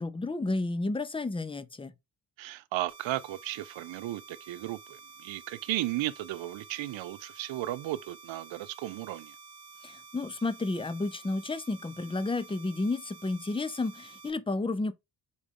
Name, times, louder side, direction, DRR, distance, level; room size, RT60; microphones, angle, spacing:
voice 1, 0.0-1.9 9.8-14.9, left 2 dB, 10° left, 0.5 m, -31 dB
voice 2, 2.4-9.3, right 15 dB, 70° right, 0.5 m, -35 dB
sound 1, 2.9-14.3, right 4 dB, 55° right, 1.2 m, -51 dB
3.9 x 3.5 x 3.6 m
supercardioid pair, 40°, 47 cm